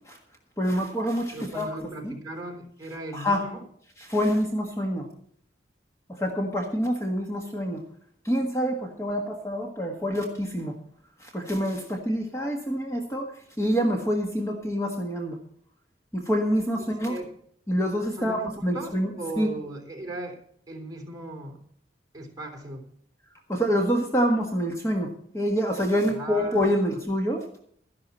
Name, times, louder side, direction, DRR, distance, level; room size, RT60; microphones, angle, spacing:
voice 1, 0.6-1.7 2.0-2.1 3.1-3.4 4.0-5.1 6.1-7.8 8.2-10.7 11.2-13.3 13.6-15.4 16.1-17.2 17.7-19.5 23.5-27.4, equal, 15° left, 2 dB, 1.5 m, -26 dB
voice 2, 1.3-3.6 17.1-17.3 18.1-18.5 18.7-20.4 20.7-21.6 22.1-22.8 26.0-27.0, right 2 dB, 20° right, 1 dB, 3.5 m, -37 dB
12.5 x 11.5 x 4.2 m, 0.62 s
head